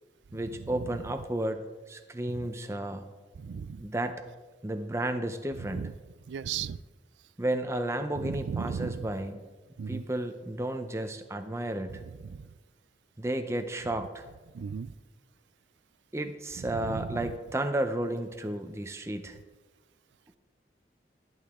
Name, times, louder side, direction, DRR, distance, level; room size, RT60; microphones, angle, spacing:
voice 1, 0.3-3.0 3.8-4.2 4.6-5.8 7.4-9.4 9.9-12.0 13.2-14.2 16.1-19.4, right 1 dB, 15° right, 7 dB, 0.6 m, -32 dB
voice 2, 3.4-3.8 5.6-5.9 6.3-6.8 8.1-9.1 9.8-10.0 11.9-12.5 14.5-14.9 16.6-17.3, right 6 dB, 90° right, 18 dB, 0.4 m, -36 dB
12.0 x 11.0 x 3.6 m, 1.2 s
head